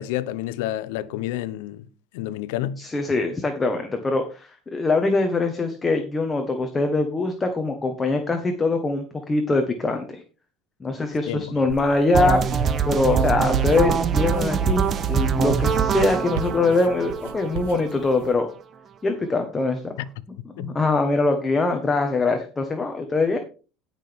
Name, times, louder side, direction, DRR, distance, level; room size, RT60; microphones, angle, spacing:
voice 1, 0.0-1.9 2.1-2.8 11.3-11.5 20.0-20.1 20.6-20.7, left 13 dB, 85° left, 0.7 m, -29 dB
voice 2, 2.8-10.2 10.8-18.5 19.0-19.9 20.6-23.4, left 3 dB, 15° left, 1.3 m, -23 dB
sound 1, 11.7-18.3, right 7 dB, 80° right, 1.2 m, -35 dB
sound 2, 12.1-18.1, right 6 dB, 35° right, 0.8 m, -23 dB
17.0 x 6.1 x 3.5 m
cardioid pair, 135°, 0 cm